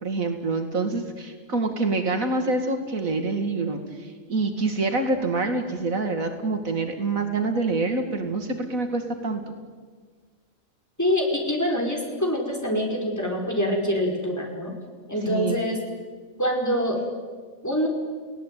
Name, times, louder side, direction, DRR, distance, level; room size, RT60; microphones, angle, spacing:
voice 1, 0.0-9.4 15.3-15.6, right 3 dB, 80° right, 6 dB, 2.7 m, -26 dB
voice 2, 11.0-14.7 15.1-15.8 16.4-17.0 17.6-17.9, equal, 10° left, 0 dB, 5.0 m, -25 dB
30.0 x 18.0 x 9.3 m, 1.6 s
omnidirectional pair, 1.4 m